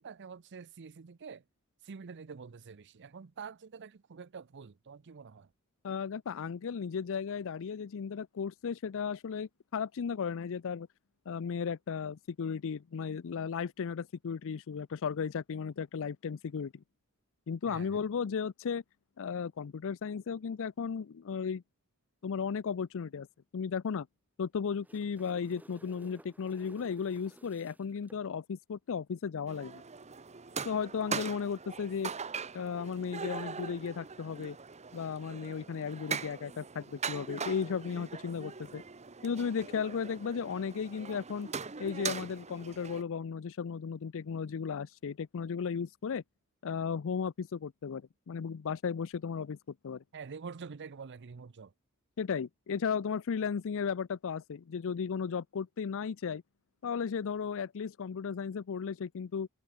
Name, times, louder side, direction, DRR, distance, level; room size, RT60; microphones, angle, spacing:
voice 1, 0.0-1.4 1.8-5.5 17.7-18.0 50.1-51.7, right 5 dB, 55° right, 0.6 m, -46 dB
voice 2, 5.8-10.9 11.3-16.8 17.5-18.8 19.2-21.6 22.2-23.3 23.5-24.1 24.4-29.8 30.6-32.1 32.5-34.6 34.9-38.8 39.2-41.5 41.8-46.2 46.6-49.6 49.8-50.0 52.2-56.4 56.8-59.5, left 6 dB, 60° left, 0.4 m, -35 dB
sound 1, 24.6-28.2 32.0-32.2, right 1 dB, 5° right, 1.2 m, -56 dB
sound 2, 29.5-43.0, right 5 dB, 30° right, 1.0 m, -41 dB
head